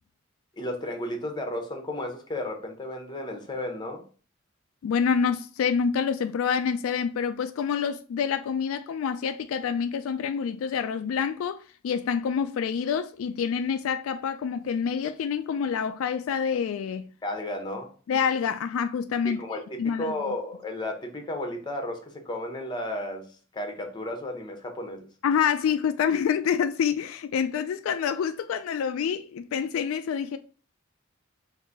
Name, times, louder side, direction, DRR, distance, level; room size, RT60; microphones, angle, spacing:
voice 1, 0.6-4.1 17.2-17.9 19.2-23.3 23.5-25.1, left 1 dB, 20° left, 0.8 m, -33 dB
voice 2, 4.8-17.1 18.1-19.4 19.8-20.2 25.2-30.4, left 7 dB, 80° left, 0.3 m, -27 dB
3.9 x 2.6 x 3.7 m
head